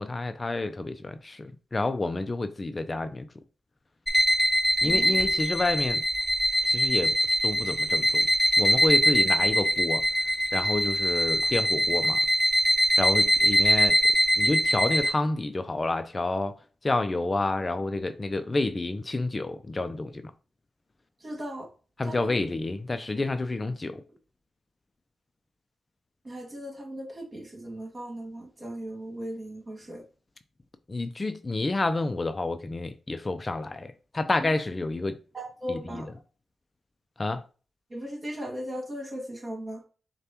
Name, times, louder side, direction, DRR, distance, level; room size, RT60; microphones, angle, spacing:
voice 1, 0.0-3.3 4.8-6.0 6.6-7.2 7.4-8.3 8.6-10.0 10.5-12.3 13.0-14.0 14.4-16.5 16.8-20.3 22.0-24.0 30.9-35.2 35.7-36.1 37.2-37.4, left 2 dB, 35° left, 0.4 m, -29 dB
sound 1, 4.1-15.1, equal, 15° left, 1.1 m, -23 dB
voice 2, 4.8-5.2 21.2-21.7 22.1-22.3 26.2-30.0 35.3-36.1 37.9-39.8, equal, 40° right, 2.0 m, -37 dB
6.6 x 2.2 x 2.9 m
cardioid pair, 50°, 0 cm